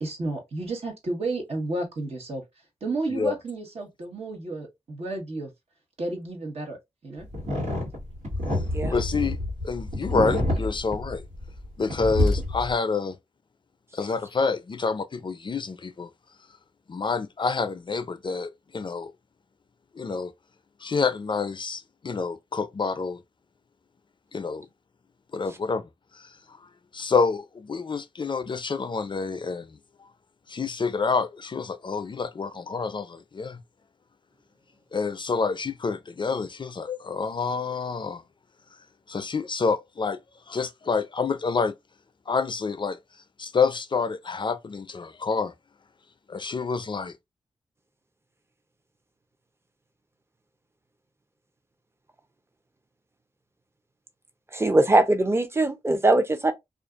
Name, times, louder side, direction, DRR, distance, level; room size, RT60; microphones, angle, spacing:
voice 1, 0.0-2.4 2.8-5.5 6.0-7.3, right 2 dB, 65° right, 1.1 m, -32 dB
sound 1, 7.3-11.7 11.9-12.7, left 1 dB, 90° right, 1.6 m, -27 dB
voice 2, 8.9-9.4 9.6-11.2 11.8-13.2 13.9-16.1 16.9-19.1 19.9-20.3 20.8-23.2 24.3-24.7 25.3-25.9 26.1-29.8 30.5-33.6 34.9-38.2 39.1-40.2 40.5-41.7 42.3-43.0 43.4-45.5 46.3-47.1, left 4 dB, 45° left, 0.4 m, -28 dB
voice 3, 54.5-56.5, right 2 dB, 20° right, 0.7 m, -21 dB
2.5 x 2.4 x 2.4 m
cardioid pair, 40°, 11 cm